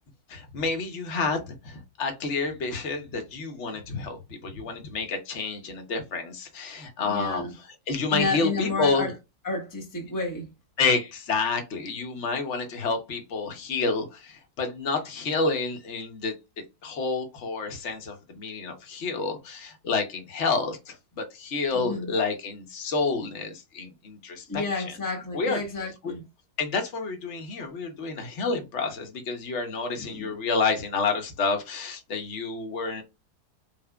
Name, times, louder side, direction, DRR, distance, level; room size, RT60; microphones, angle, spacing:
voice 1, 0.3-4.2 4.4-7.4 7.9-9.1 10.8-16.3 16.8-24.9 25.3-25.6 26.0-26.1 26.6-33.0, left 4 dB, 50° left, 1.2 m, -29 dB
voice 2, 7.1-7.5 8.1-9.1 9.4-10.5 21.7-22.1 24.5-26.2 30.0-30.3, left 3 dB, 15° left, 1.0 m, -31 dB
4.4 x 3.6 x 2.3 m
omnidirectional pair, 1.7 m